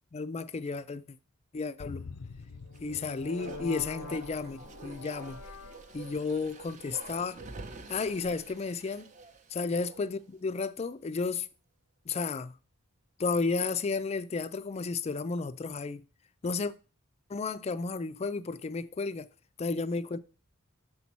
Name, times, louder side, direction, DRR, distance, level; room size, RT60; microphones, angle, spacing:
voice 1, 0.1-1.2 1.5-2.1 2.8-5.4 5.9-7.4 7.9-9.1 9.5-11.5 12.1-12.6 13.2-16.1 16.4-16.7 17.3-19.3 19.6-20.2, left 4 dB, 30° left, 0.3 m, -33 dB
sound 1, 1.8-6.2, left 4 dB, 85° left, 0.5 m, -44 dB
Bark, 2.7-10.3 10.6-10.7, right 3 dB, 35° right, 0.6 m, -48 dB
6.8 x 4.1 x 6.0 m
head